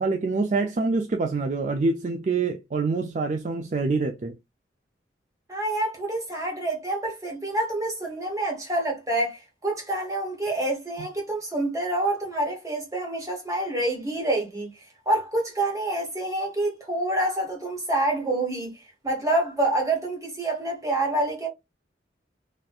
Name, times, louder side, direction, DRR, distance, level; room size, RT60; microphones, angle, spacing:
voice 1, 0.0-4.3, right 3 dB, 40° right, 0.4 m, -26 dB
voice 2, 5.5-18.7 19.0-21.5, right 1 dB, 20° right, 1.3 m, -27 dB
4.1 x 2.5 x 2.3 m
head